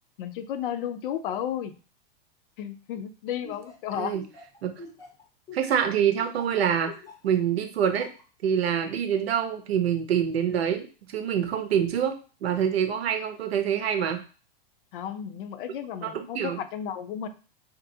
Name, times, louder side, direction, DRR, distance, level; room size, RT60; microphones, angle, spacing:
voice 1, 0.2-1.7 2.6-4.1 14.9-17.3, left 9 dB, 60° left, 11 dB, 0.5 m, -33 dB
Laughter, 3.4-7.3 7.8-8.2, left 3 dB, 10° left, 0.6 m, -45 dB
voice 2, 5.5-6.9 7.2-8.1 8.4-14.2 16.0-16.6, right 8 dB, 85° right, 7 dB, 0.8 m, -26 dB
3.0 x 2.5 x 2.6 m, 0.35 s
hypercardioid pair, 125°, 30 cm